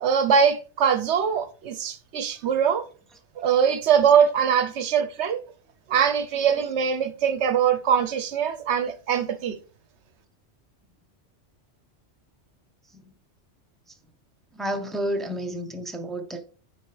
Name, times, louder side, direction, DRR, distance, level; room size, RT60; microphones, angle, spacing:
voice 1, 0.0-2.8 3.4-5.4 5.9-9.6, right 7 dB, 70° right, 1.0 m, -22 dB
voice 2, 14.5-16.5, right 1 dB, ahead, 0.6 m, -31 dB
9.4 x 4.0 x 3.3 m
omnidirectional pair, 1.2 m